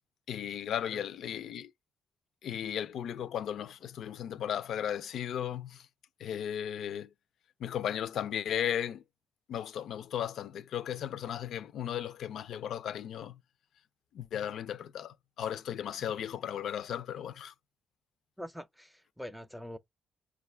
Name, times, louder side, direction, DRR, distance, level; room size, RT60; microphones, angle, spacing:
voice 1, 0.3-1.7 2.4-5.9 6.2-7.1 7.6-9.0 9.5-13.4 14.1-17.5, left 9 dB, 70° left, 0.4 m, -36 dB
voice 2, 18.4-19.8, equal, 5° right, 0.4 m, -44 dB
4.7 x 2.3 x 3.2 m
cardioid pair, 130°, 0 cm